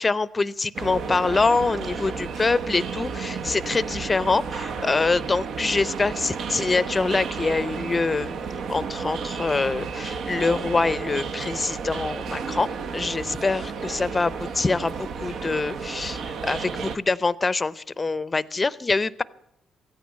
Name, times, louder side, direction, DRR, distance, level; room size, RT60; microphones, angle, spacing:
voice 1, 0.0-8.4 8.7-12.7 12.9-19.2, left 3 dB, 25° left, 19 dB, 0.6 m, -25 dB
sound 1, 0.7-17.0, right 5 dB, 65° right, 0.8 m, -32 dB
15.5 x 9.4 x 8.5 m, 0.78 s
cardioid pair, 90°, 0 cm